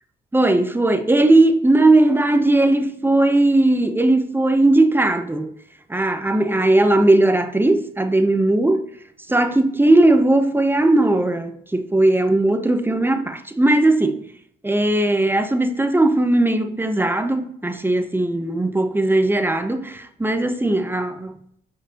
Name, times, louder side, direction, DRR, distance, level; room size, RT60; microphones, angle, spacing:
voice 1, 0.3-5.5 5.9-8.8 9.3-14.2 14.6-21.3, right 2 dB, 10° right, 0.8 m, -18 dB
8.2 x 5.7 x 2.9 m
cardioid pair, 90°, 20 cm